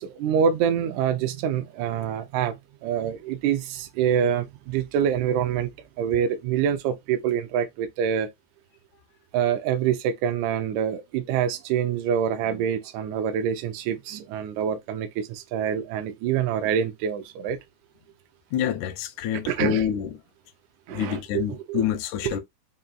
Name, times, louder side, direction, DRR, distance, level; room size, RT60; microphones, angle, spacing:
voice 1, 0.0-2.5 2.8-5.7 6.0-8.3 9.3-17.6 19.5-19.8 20.9-21.4 21.7-21.8 22.2-22.3, right 8 dB, 80° right, 2.0 m, -26 dB
voice 2, 18.5-20.2 20.9-22.4, left 9 dB, 85° left, 1.9 m, -27 dB
5.3 x 2.6 x 2.3 m
omnidirectional pair, 3.4 m